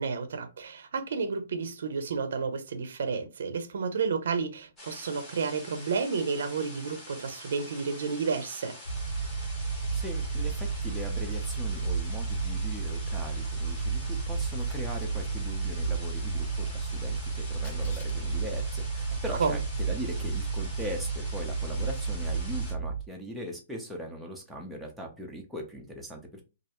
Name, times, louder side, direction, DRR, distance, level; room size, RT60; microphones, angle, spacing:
voice 1, 0.0-8.7 19.4-19.6, right 5 dB, 75° right, 0.5 m, -31 dB
sound 1, 4.8-22.7, left 1 dB, 15° left, 0.9 m, -46 dB
sound 2, 8.9-23.0, right 4 dB, 85° left, 0.4 m, -32 dB
voice 2, 9.9-26.4, equal, ahead, 0.5 m, -40 dB
Camera, 14.4-15.1 17.5-18.3, left 3 dB, 55° left, 0.9 m, -52 dB
2.4 x 2.1 x 2.8 m
hypercardioid pair, 160°, 0 cm